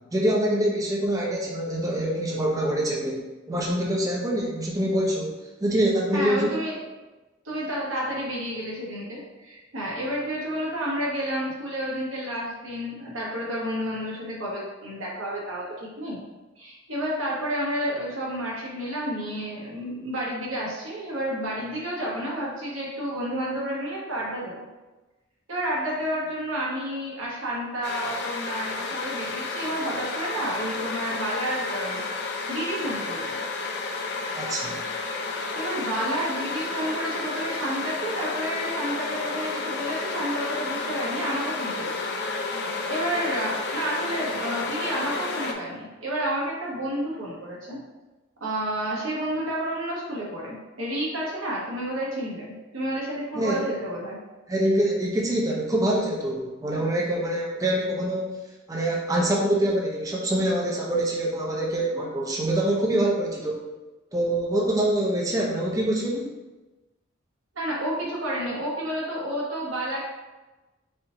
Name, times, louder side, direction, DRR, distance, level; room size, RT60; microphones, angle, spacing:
voice 1, 0.1-6.6 34.3-34.8 53.3-53.6 54.5-58.3 58.7-63.6 64.1-66.3, right 1 dB, 20° right, -3 dB, 0.5 m, -25 dB
voice 2, 6.1-6.8 7.4-16.2 16.6-24.6 25.5-32.0 32.5-33.4 35.5-41.9 42.3-47.8 48.4-54.2 67.5-70.0, right 1 dB, 85° right, -5 dB, 1.4 m, -30 dB
sound 1, 27.8-45.5, left 3 dB, 60° left, 0.5 m, -31 dB
4.3 x 2.6 x 3.9 m, 1.1 s
head